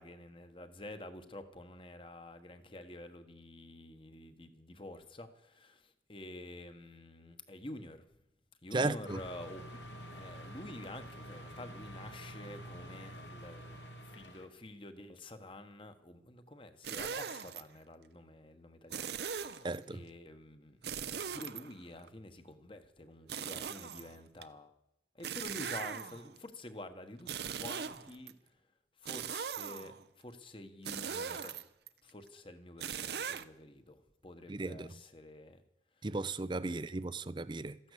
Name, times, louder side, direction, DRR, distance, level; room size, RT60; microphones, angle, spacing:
voice 1, 0.0-8.0 8.6-9.6 10.1-20.8 21.3-24.7 25.1-28.3 29.0-31.5 32.0-35.6 36.9-37.0, left 1 dB, 30° left, 1.3 m, -49 dB
voice 2, 8.7-9.2 19.6-20.0 34.5-34.9 36.0-37.9, right 2 dB, 25° right, 0.5 m, -35 dB
sound 1, 9.1-14.5, equal, 90° left, 2.5 m, -48 dB
sound 2, 16.8-17.6 18.9-19.8 20.8-22.1 23.3-24.4 25.2-26.4 27.2-28.3 29.1-30.0 30.9-31.9 32.8-33.4, right 7 dB, 70° right, 0.8 m, -40 dB
14.5 x 11.5 x 8.3 m
head